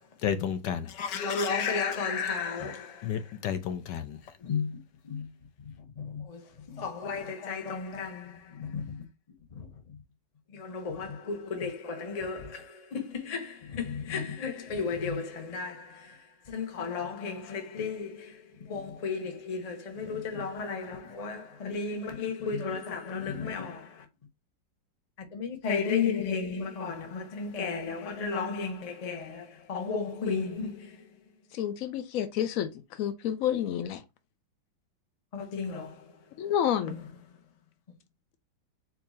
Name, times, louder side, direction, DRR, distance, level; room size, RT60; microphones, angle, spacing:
voice 1, 0.2-4.2, left 8 dB, 70° left, 1.3 m, -32 dB
voice 2, 1.2-2.9 4.4-4.7 5.0-5.2 6.0-6.4 6.8-9.0 9.6-9.7 10.5-16.1 16.5-18.3 18.7-23.9 25.3-31.0 35.3-35.9, left 5 dB, 40° left, 0.5 m, -34 dB
voice 3, 31.5-34.0 36.4-37.0, left 10 dB, 85° left, 0.7 m, -29 dB
4.7 x 2.8 x 4.2 m
omnidirectional pair, 2.1 m